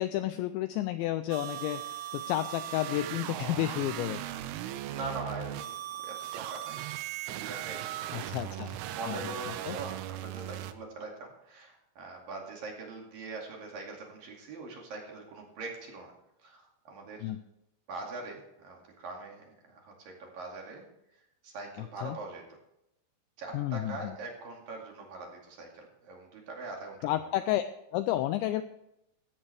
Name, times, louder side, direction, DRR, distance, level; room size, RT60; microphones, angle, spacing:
voice 1, 0.0-4.2 8.1-8.8 9.1-9.2 9.7-9.8 17.2-17.4 22.0-22.2 23.5-24.1 27.0-27.6 27.9-28.6, left 14 dB, 90° left, 10 dB, 2.6 m, -31 dB
sound 1, 1.3-10.7, right 13 dB, 85° right, 3.2 m, -38 dB
voice 2, 4.8-6.9 7.3-16.1 16.4-17.3 17.9-20.9 21.1-22.4 23.4-27.1, right 3 dB, 50° right, 0 dB, 3.5 m, -43 dB
16.5 x 13.5 x 3.4 m, 0.82 s
omnidirectional pair, 5.9 m